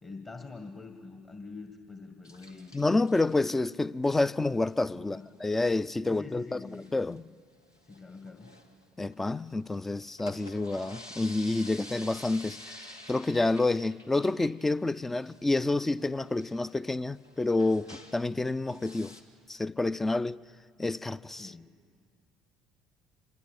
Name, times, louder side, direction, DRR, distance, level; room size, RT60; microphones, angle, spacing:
voice 1, 0.0-2.8 4.9-5.3 6.0-6.9 7.8-8.5 21.4-21.7, left 4 dB, 30° left, 2.0 m, -45 dB
sound 1, 2.2-3.4 4.6-4.9 5.2-5.3 5.5-5.6 5.8-5.9 6.6-7.2 7.6-9.5 10.0-18.4 18.7-19.2, left 1 dB, 85° left, 1.4 m, -50 dB
voice 2, 2.7-7.2 9.0-19.2 19.5-20.4 20.8-21.5, left 2 dB, 15° left, 0.5 m, -29 dB
26.5 x 21.5 x 6.9 m
figure-of-eight pair, 55°, 2 cm